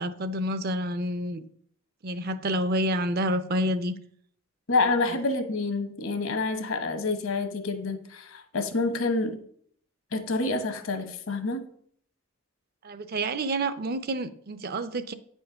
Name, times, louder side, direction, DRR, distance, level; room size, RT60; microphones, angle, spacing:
voice 1, 0.0-1.4 2.0-3.9 12.8-15.1, right 1 dB, 45° right, 0.5 m, -28 dB
voice 2, 4.7-9.4 10.1-11.7, left 3 dB, 65° left, 1.1 m, -28 dB
9.1 x 4.4 x 5.6 m
head